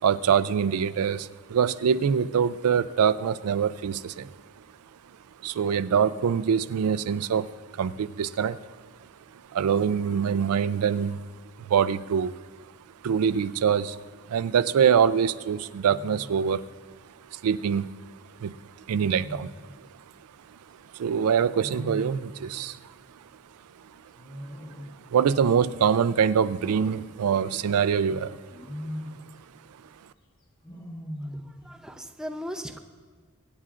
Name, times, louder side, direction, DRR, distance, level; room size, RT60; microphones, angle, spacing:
voice 1, 0.0-4.3 5.4-8.8 9.3-11.2 11.6-12.4 13.0-14.0 14.3-16.6 17.3-18.6 18.9-19.5 19.8-19.9 20.5-20.6 20.9-22.9 25.1-28.9, right 7 dB, 85° right, 14 dB, 0.4 m, -24 dB
Wild animals, 14.2-14.6 15.8-16.5 18.9-19.8 21.5-22.6 24.1-25.1 26.6-27.7 28.5-29.3 30.6-31.6, equal, 20° left, 1.3 m, -40 dB
voice 2, 31.3-32.8, equal, 5° right, 4 dB, 0.5 m, -38 dB
24.0 x 9.6 x 2.5 m, 1.6 s
head